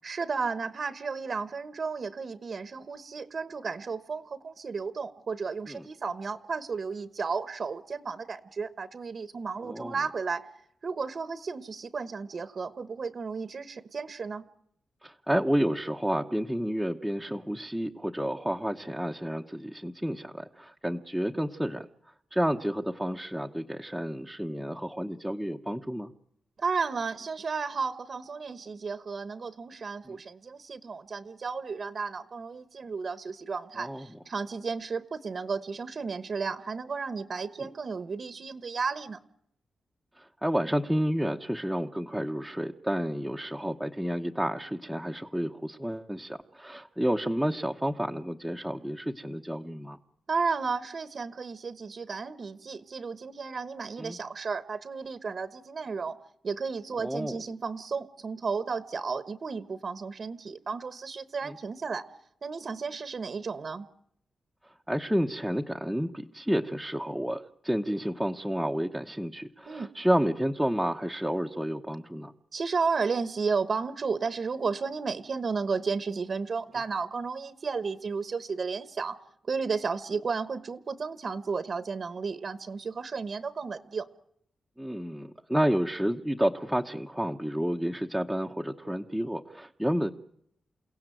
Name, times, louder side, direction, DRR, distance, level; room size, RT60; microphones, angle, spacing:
voice 1, 0.0-10.5 10.8-14.4 26.6-39.2 50.3-56.2 56.4-62.0 62.4-63.9 69.7-69.9 72.5-79.2 79.5-84.1, right 5 dB, 45° right, 14 dB, 1.1 m, -33 dB
voice 2, 9.6-9.9 15.0-21.9 22.3-26.1 30.1-30.2 33.8-34.0 37.6-37.7 40.2-50.0 54.0-54.2 57.0-57.4 61.5-61.6 64.9-72.3 84.8-90.1, equal, ahead, 0 dB, 0.9 m, -30 dB
29.0 x 17.0 x 9.1 m, 0.72 s
wide cardioid pair, 165°, 0 cm